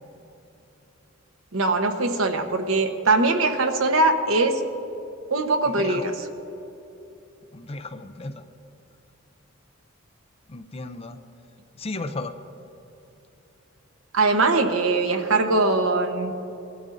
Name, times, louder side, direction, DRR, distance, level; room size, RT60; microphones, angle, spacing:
voice 1, 1.5-4.6 5.3-6.1 14.1-16.3, right 3 dB, 80° right, 6 dB, 1.0 m, -21 dB
voice 2, 5.6-6.1 7.5-8.4 10.5-11.2 11.8-12.3, left 2 dB, 30° left, 8 dB, 0.5 m, -34 dB
20.0 x 12.5 x 2.6 m, 2.9 s
head